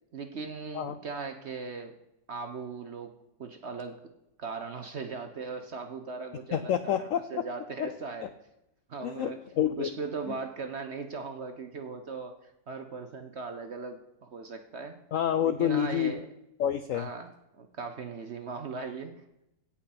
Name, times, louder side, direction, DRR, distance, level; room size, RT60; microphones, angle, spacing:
voice 1, 0.1-1.9 2.3-3.1 3.4-4.0 4.4-8.3 8.9-9.4 9.8-15.0 15.4-16.3 16.9-19.2, right 4 dB, 50° right, 7 dB, 0.8 m, -39 dB
voice 2, 6.5-7.4 7.8-7.9 9.0-9.9 15.1-16.1 16.6-17.1, left 10 dB, 80° left, 11 dB, 0.7 m, -28 dB
16.5 x 5.8 x 4.3 m, 0.86 s
omnidirectional pair, 1.9 m